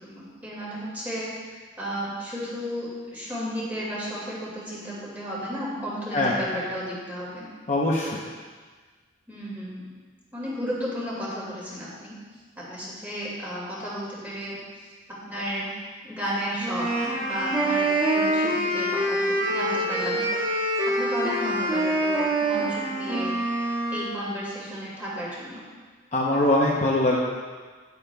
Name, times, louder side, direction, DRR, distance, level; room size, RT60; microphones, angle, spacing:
voice 1, 0.0-7.5 9.3-9.9 10.3-12.2 12.6-14.9 15.3-20.2 20.9-23.3 23.9-25.6, equal, 10° right, -7 dB, 2.0 m, -33 dB
voice 2, 7.7-8.2 26.1-27.2, left 1 dB, 35° left, -4 dB, 0.7 m, -22 dB
sound 1, 16.6-24.1, right 1 dB, 25° right, 1.8 m, -25 dB
9.7 x 8.5 x 2.3 m, 1.5 s
head